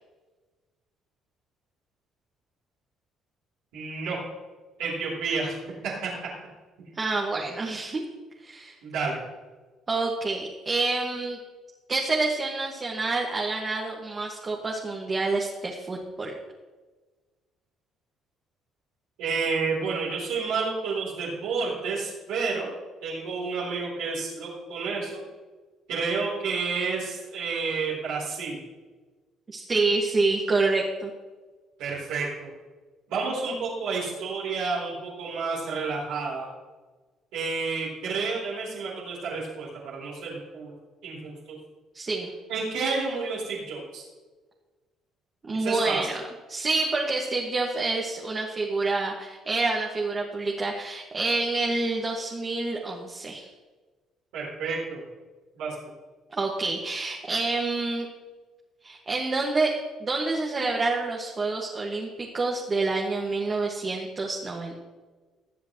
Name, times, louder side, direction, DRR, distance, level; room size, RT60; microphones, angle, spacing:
voice 1, 3.7-4.2 4.8-5.6 5.8-6.1 8.8-9.2 19.2-22.7 23.0-25.2 25.9-28.6 31.8-32.5 33.1-36.5 37.3-40.7 41.0-41.6 42.5-44.0 45.6-46.0 54.3-55.0 55.6-55.7, right 4 dB, 80° right, -7 dB, 3.9 m, -30 dB
voice 2, 6.9-8.0 8.4-8.7 9.9-11.4 11.9-16.3 29.5-31.1 41.9-42.3 45.5-46.2 46.5-53.5 56.3-58.1 58.8-64.7, right 3 dB, 35° right, -2 dB, 1.9 m, -27 dB
20.5 x 7.3 x 3.2 m, 1.3 s
supercardioid pair, 70°, 0 cm